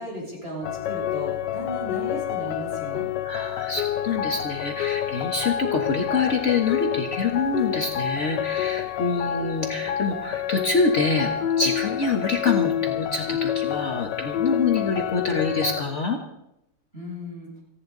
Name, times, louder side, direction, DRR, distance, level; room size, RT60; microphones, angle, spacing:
voice 1, 0.0-3.1 16.9-17.5, equal, 35° right, -4 dB, 7.5 m, -35 dB
sound 1, 0.6-15.8, left 10 dB, 80° left, 1.4 m, -28 dB
voice 2, 3.2-11.3 11.6-16.2, left 4 dB, 45° left, 2 dB, 1.5 m, -26 dB
30.0 x 10.0 x 4.0 m, 0.81 s
omnidirectional pair, 1.9 m